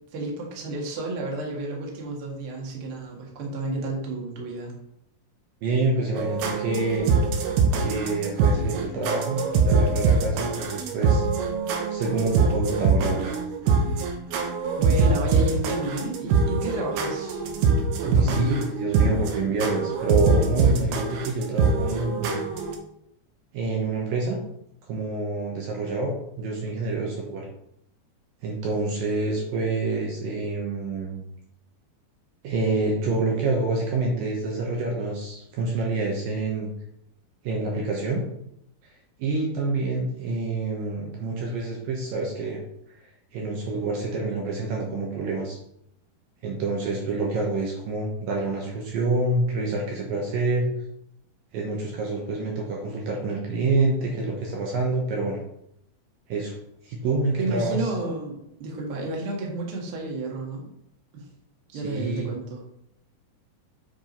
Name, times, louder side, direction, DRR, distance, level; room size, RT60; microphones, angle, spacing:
voice 1, 0.1-4.7 14.8-17.4 18.0-18.4 57.4-58.3 58.6-60.7 61.1-61.3 61.7-62.6, right 2 dB, 45° right, -1 dB, 2.1 m, -31 dB
voice 2, 5.6-7.2 7.8-11.3 11.9-13.3 18.0-22.4 23.5-24.4 24.9-27.5 28.4-31.2 32.4-36.7 37.4-38.2 39.2-42.6 43.3-45.6 46.4-50.7 51.5-55.4 56.3-56.5 56.8-57.9 61.7-62.3, right 3 dB, 70° right, -1 dB, 2.6 m, -27 dB
sound 1, 6.2-22.8, right 4 dB, 85° right, 3.1 m, -23 dB
7.6 x 4.9 x 5.3 m, 0.77 s
omnidirectional pair, 4.7 m